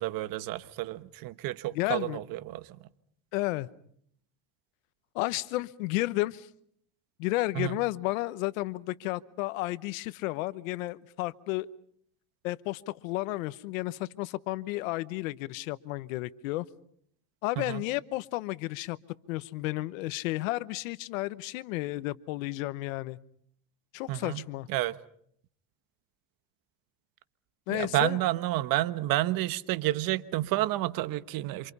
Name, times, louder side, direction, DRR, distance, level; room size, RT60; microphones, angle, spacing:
voice 1, 0.0-2.8 7.5-7.8 17.6-17.8 24.1-24.9 27.7-31.7, right 16 dB, 60° right, 1.3 m, -30 dB
voice 2, 1.7-2.2 3.3-3.7 5.1-6.5 7.2-11.7 12.4-16.7 17.4-19.0 19.3-23.2 23.9-24.7 27.7-28.2, left 19 dB, 90° left, 1.0 m, -32 dB
28.0 x 27.0 x 5.5 m
supercardioid pair, 115°, 39 cm